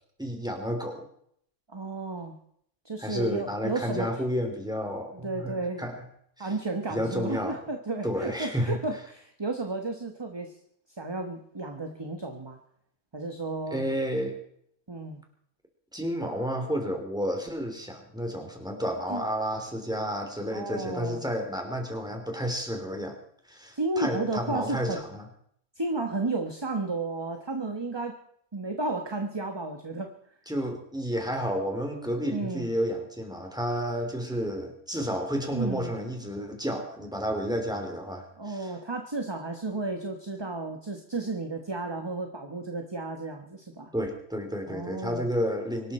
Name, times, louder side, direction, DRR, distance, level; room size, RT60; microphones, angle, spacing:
voice 1, 0.2-1.0 3.0-6.0 6.4-6.5 6.9-7.6 8.0-8.8 13.7-14.4 15.9-23.2 23.5-25.3 30.5-38.7 43.9-45.9, equal, 5° right, 3 dB, 3.2 m, -31 dB
voice 2, 1.7-2.4 2.8-4.1 5.1-5.9 6.4-10.5 11.0-12.6 13.1-13.8 14.9-15.2 19.1-19.2 20.5-21.2 23.7-25.0 25.8-28.2 28.5-30.1 32.3-32.7 35.5-35.9 38.4-43.9 44.7-45.2, right 2 dB, 20° right, 5 dB, 1.2 m, -33 dB
24.5 x 12.5 x 4.4 m, 0.68 s
omnidirectional pair, 1.5 m